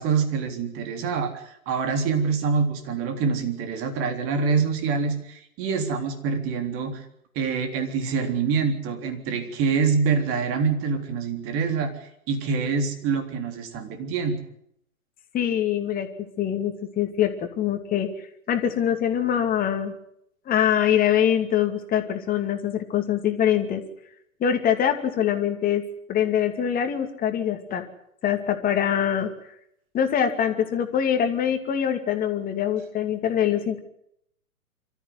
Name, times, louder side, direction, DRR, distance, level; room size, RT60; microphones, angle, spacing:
voice 1, 0.0-7.1 7.4-14.4, right 5 dB, 30° right, 6 dB, 3.6 m, -25 dB
voice 2, 15.3-16.1 16.4-18.1 18.5-19.9 20.5-23.8 24.4-25.8 26.1-27.8 28.2-29.3 29.9-33.8, left 9 dB, 20° left, 6 dB, 2.6 m, -24 dB
25.5 x 14.0 x 9.5 m, 0.75 s
figure-of-eight pair, 120°, 44 cm